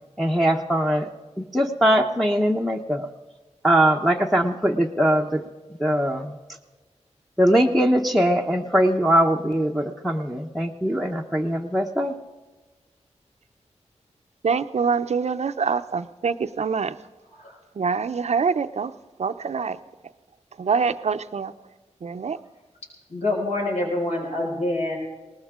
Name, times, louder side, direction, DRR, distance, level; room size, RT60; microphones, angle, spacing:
voice 1, 0.2-1.1 1.4-3.1 3.6-5.4 5.8-6.4 7.4-12.1, equal, ahead, 0 dB, 0.9 m, -21 dB
voice 2, 14.4-16.9 17.8-18.9 19.2-19.8 20.6-21.5 22.0-22.4, right 5 dB, 65° right, 11 dB, 0.6 m, -25 dB
voice 3, 23.1-25.0, left 2 dB, 70° left, -2 dB, 5.3 m, -25 dB
20.0 x 19.0 x 3.7 m, 1.2 s
wide cardioid pair, 80°, 12 cm